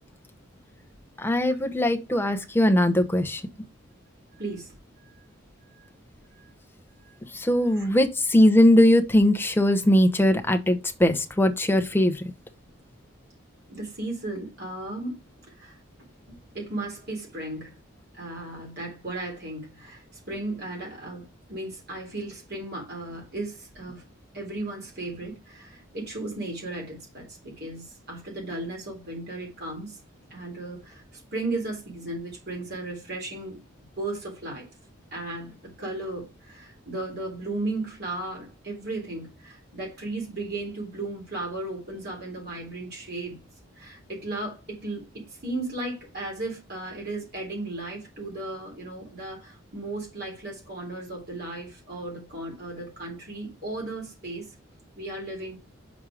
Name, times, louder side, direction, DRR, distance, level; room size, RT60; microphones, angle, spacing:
voice 1, 1.2-3.4 7.3-12.3, left 1 dB, 10° left, 0.8 m, -20 dB
voice 2, 4.4-4.7 5.8-5.9 7.8-7.9 13.7-15.2 15.5-17.8 18.2-24.0 24.3-30.0 30.3-33.6 34.0-34.7 35.1-43.4 43.8-54.5 55.0-55.6, right 2 dB, 55° right, 3.6 m, -35 dB
6.2 x 4.4 x 4.9 m
head